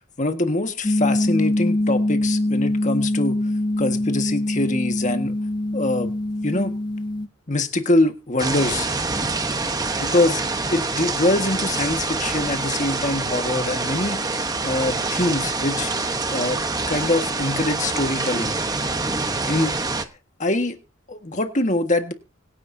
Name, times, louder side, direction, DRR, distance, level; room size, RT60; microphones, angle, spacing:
voice 1, 0.2-3.4 3.8-5.3 5.7-6.1 6.4-6.7 7.5-8.9 10.0-10.4 10.7-14.2 14.6-16.6 16.9-18.6 19.5-19.7 20.4-20.8 21.1-22.1, left 2 dB, 35° left, 1.6 m, -23 dB
sound 1, 0.8-7.3, left 1 dB, 20° left, 0.9 m, -23 dB
sound 2, 8.4-20.0, right 3 dB, 20° right, 1.0 m, -26 dB
25.5 x 10.0 x 2.7 m
head